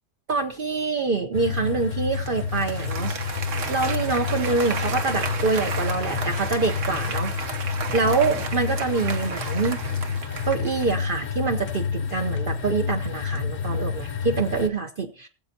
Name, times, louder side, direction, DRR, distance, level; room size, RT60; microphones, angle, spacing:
voice 1, 0.3-3.1 3.7-7.3 7.9-9.8 10.5-15.1, right 4 dB, 50° right, 3 dB, 1.0 m, -25 dB
sound 1, 1.3-14.7, left 6 dB, 50° left, 0.9 m, -29 dB
Applause, 2.1-11.1, right 5 dB, 75° right, 1.5 m, -33 dB
20.0 x 7.8 x 2.8 m, 0.34 s
omnidirectional pair, 1.3 m